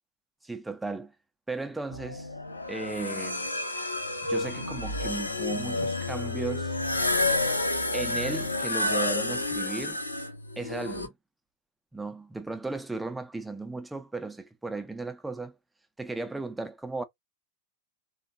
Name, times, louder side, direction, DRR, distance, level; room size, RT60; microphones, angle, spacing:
voice 1, 0.4-1.1 1.5-2.3 2.7-3.5 4.2-6.8 7.9-10.0 10.6-11.1 11.9-15.6 16.0-17.0, right 3 dB, 5° right, 0.6 m, -35 dB
sound 1, 1.9-11.1, left 2 dB, 80° left, 0.6 m, -30 dB
3.5 x 2.3 x 2.5 m
figure-of-eight pair, 90°, 0 cm